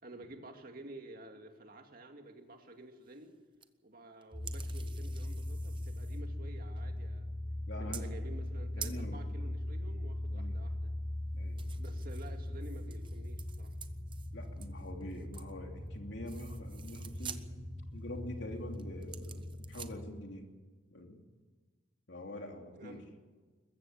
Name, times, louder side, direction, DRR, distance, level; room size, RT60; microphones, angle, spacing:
voice 1, 0.0-3.4 3.8-7.3 7.7-10.9 11.7-13.7 22.7-23.0, right 2 dB, 45° right, 4 dB, 2.4 m, -51 dB
sound 1, 3.0-3.3 3.6-3.7 4.2-6.3 6.7-7.0 7.9-8.2 8.5-8.6 8.8-9.0 11.6-15.5 15.9-16.0 16.2-17.5 18.0-18.2 18.7-19.9, right 8 dB, 25° right, 0.9 m, -49 dB
sound 2, 4.3-19.9, left 1 dB, 15° left, 2.7 m, -40 dB
voice 2, 7.7-8.1 8.8-9.2 10.3-10.6 11.3-11.7 14.3-20.5 20.9-21.2 22.1-23.0, left 1 dB, 65° left, 3 dB, 3.0 m, -45 dB
21.5 x 15.0 x 8.6 m, 1.4 s
head